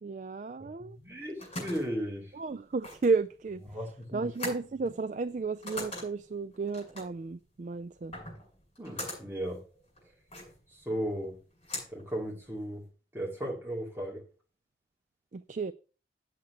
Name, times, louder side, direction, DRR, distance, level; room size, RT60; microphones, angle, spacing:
voice 1, 0.0-1.0 2.3-3.6 4.1-8.1 15.3-15.7, right 4 dB, 40° right, 0.3 m, -33 dB
voice 2, 0.8-2.3 3.7-4.3 8.8-9.6 10.7-11.4 11.9-12.8 13.1-14.2, equal, 15° right, 2.3 m, -36 dB
sound 1, 1.0-12.9, left 1 dB, 30° left, 6.5 m, -43 dB
8.3 x 6.5 x 5.8 m
head